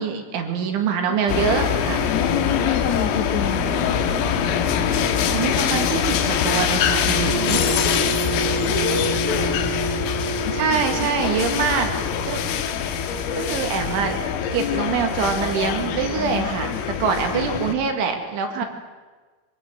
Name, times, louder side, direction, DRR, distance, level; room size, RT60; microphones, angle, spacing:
voice 1, 0.0-2.1 5.3-7.6 10.5-11.9 12.3-12.5 12.8-13.1 13.3-14.2 14.5-18.7, right 6 dB, 70° right, 4 dB, 4.4 m, -24 dB
sound 1, 1.3-17.7, left 8 dB, 85° left, 4.0 m, -24 dB
sound 2, 1.8-12.7, right 6 dB, 85° right, 5.4 m, -32 dB
voice 2, 2.1-3.8 7.1-7.2 7.4-7.5 8.6-9.6 10.7-11.8 14.6-15.1 16.0-16.8 17.3-17.8 18.6-18.7, left 8 dB, 60° left, 2 dB, 1.9 m, -29 dB
24.0 x 18.5 x 8.1 m, 1.4 s
omnidirectional pair, 5.9 m